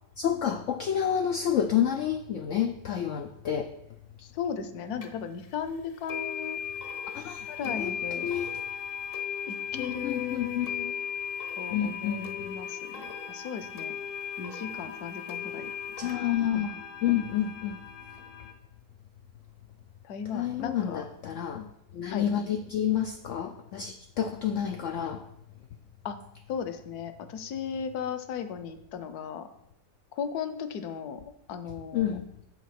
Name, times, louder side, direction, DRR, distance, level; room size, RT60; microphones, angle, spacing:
voice 1, 0.2-3.8 7.1-7.9 8.2-8.5 9.7-10.7 11.7-12.6 16.0-17.8 20.3-25.3 31.9-32.3, left 9 dB, 90° left, 6 dB, 0.6 m, -29 dB
voice 2, 4.2-6.6 7.5-8.3 9.5-10.9 11.6-13.9 14.4-15.7 20.0-21.0 22.1-22.3 26.0-26.2 26.5-29.5 30.1-32.2, left 7 dB, 70° left, 10 dB, 1.1 m, -36 dB
sound 1, 5.0-5.1 6.1-18.5, left 8 dB, 50° left, 0.7 m, -37 dB
7.3 x 5.5 x 5.8 m, 0.80 s
omnidirectional pair, 1.9 m